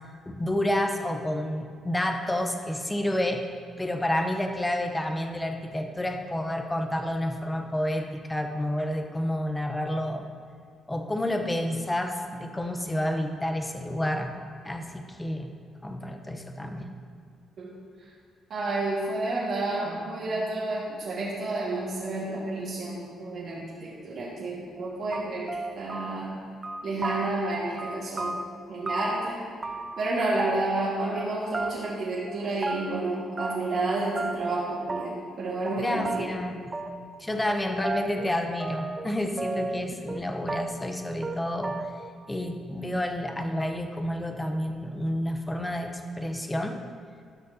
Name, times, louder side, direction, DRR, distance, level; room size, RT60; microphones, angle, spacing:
voice 1, 0.3-3.5 3.8-10.2 10.9-14.3 14.6-15.5 15.8-16.9 35.8-36.6 37.2-41.9 42.3-46.8, left 1 dB, 15° left, 4 dB, 0.8 m, -29 dB
voice 2, 18.5-25.5 25.8-26.3 26.8-28.4 28.7-29.4 30.0-36.3, right 2 dB, 60° right, -8 dB, 1.7 m, -30 dB
sound 1, 24.8-24.9 25.1-26.3 26.6-27.5 27.8-29.3 29.6-30.1 30.4-31.3 31.5-32.0 32.3-33.0 33.4-33.9 34.2-34.6 34.9-35.4 35.7-35.8 36.1-36.3 36.7-37.2 37.5-39.1 39.4-40.2 40.5-41.0 41.2-41.4 41.6-42.1, right 3 dB, 30° right, 0.3 m, -33 dB
12.0 x 6.3 x 2.8 m, 2.2 s
cardioid pair, 90°, 0 cm